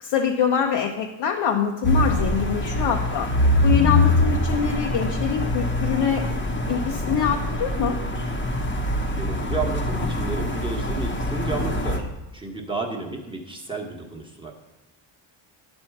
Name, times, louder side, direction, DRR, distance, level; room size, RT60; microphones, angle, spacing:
voice 1, 0.0-3.3 3.6-6.2 6.7-8.0, left 7 dB, 60° left, 2 dB, 0.8 m, -24 dB
sound 1, 1.8-12.0, left 1 dB, 25° left, 0.9 m, -24 dB
voice 2, 9.2-14.5, right 3 dB, 10° right, -1 dB, 1.1 m, -32 dB
10.0 x 4.4 x 5.9 m, 0.98 s
cardioid pair, 140°, 48 cm